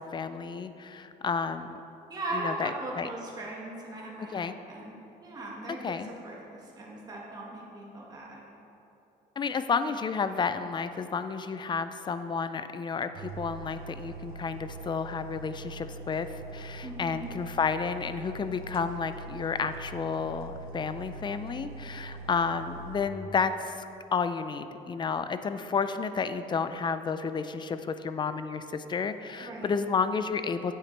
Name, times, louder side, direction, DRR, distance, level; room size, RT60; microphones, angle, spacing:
voice 1, 0.0-1.8 2.3-2.7 3.0-3.1 4.3-4.6 5.8-6.1 9.4-23.8 24.1-30.7, left 5 dB, 25° left, 11 dB, 0.4 m, -31 dB
voice 2, 2.1-4.9 5.2-6.0 6.2-8.4 16.8-17.3 29.4-29.7, right 2 dB, 25° right, -4 dB, 1.6 m, -39 dB
sound 1, 13.1-23.1, right 3 dB, 60° right, 0.7 m, -43 dB
8.9 x 7.9 x 3.3 m, 2.9 s
cardioid pair, 110°, 17 cm